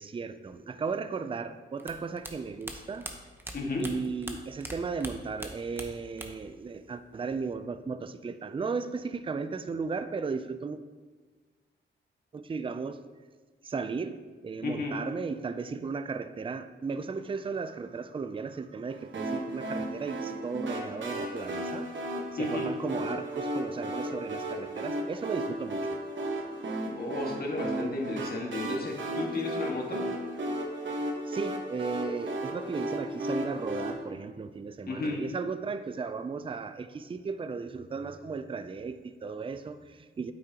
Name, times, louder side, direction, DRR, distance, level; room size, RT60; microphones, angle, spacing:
voice 1, 0.0-3.1 3.8-10.8 12.3-13.0 13.6-21.9 22.3-26.0 31.3-40.3, right 4 dB, 25° right, 11 dB, 0.4 m, -35 dB
sound 1, 1.8-4.7 5.0-6.5 6.8-7.5, right 1 dB, 10° right, 1.0 m, -41 dB
voice 2, 3.5-3.9 14.6-14.9 22.4-22.7 27.0-30.0 34.9-35.2, left 2 dB, 50° left, -1 dB, 1.8 m, -33 dB
sound 2, 19.1-33.9, right 1 dB, 75° right, 1.3 m, -34 dB
8.9 x 8.3 x 2.9 m, 1.4 s
cardioid pair, 90°, 20 cm